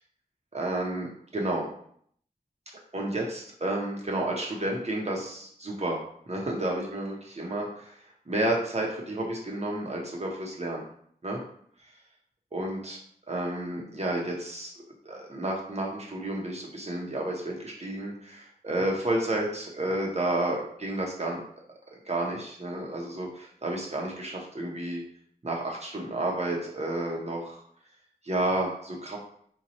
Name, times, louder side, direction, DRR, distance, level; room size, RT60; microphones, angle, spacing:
voice 1, 0.5-1.7 2.9-8.0 8.3-10.8 11.2-11.4 12.5-13.0 13.3-14.7 15.0-21.4 21.9-25.0 25.4-27.6 28.2-29.2, right 1 dB, 45° right, -2 dB, 0.7 m, -31 dB
2.8 x 2.2 x 4.0 m, 0.63 s
wide cardioid pair, 80°, 16 cm